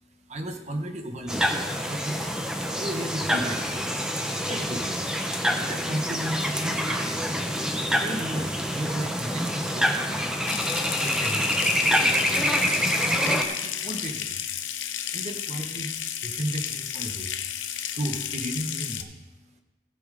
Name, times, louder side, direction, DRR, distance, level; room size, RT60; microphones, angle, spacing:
voice 1, 0.3-1.6 1.8-2.4 2.8-3.8 4.5-5.1 5.6-7.3 7.8-10.3 11.0-12.6 13.2-17.3 17.9-19.1, right 1 dB, 35° right, 4 dB, 1.2 m, -35 dB
sound 1, 1.3-13.4, equal, 5° right, 0.9 m, -26 dB
Water tap faucet / Sink (filling or washing) / Trickle dribble, 10.5-19.0, left 10 dB, 85° left, 0.8 m, -32 dB
17.5 x 6.2 x 4.9 m, 1.1 s
head